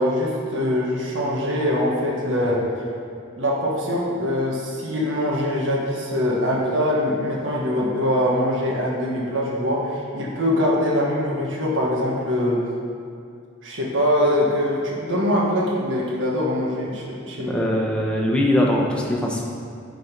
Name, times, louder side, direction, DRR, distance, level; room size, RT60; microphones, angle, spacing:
voice 1, 0.0-12.6 13.6-17.6, left 1 dB, 75° right, -4 dB, 1.5 m, -23 dB
voice 2, 17.5-19.5, left 1 dB, 5° left, -3 dB, 1.0 m, -21 dB
10.5 x 4.1 x 5.2 m, 2.3 s
head